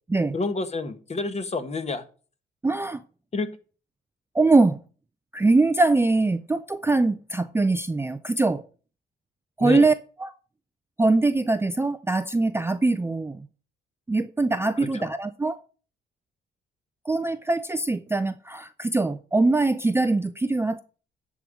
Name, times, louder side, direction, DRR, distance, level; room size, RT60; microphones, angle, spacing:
voice 1, 0.3-2.0 3.3-3.5 9.6-9.9 14.8-15.1, left 3 dB, 35° left, 1.3 m, -29 dB
voice 2, 2.6-3.0 4.3-4.8 5.3-8.6 9.6-9.9 10.2-10.3 11.0-13.5 14.1-15.6 17.1-20.8, right 3 dB, 10° right, 0.5 m, -22 dB
10.5 x 3.7 x 7.1 m
cardioid pair, 90°, 20 cm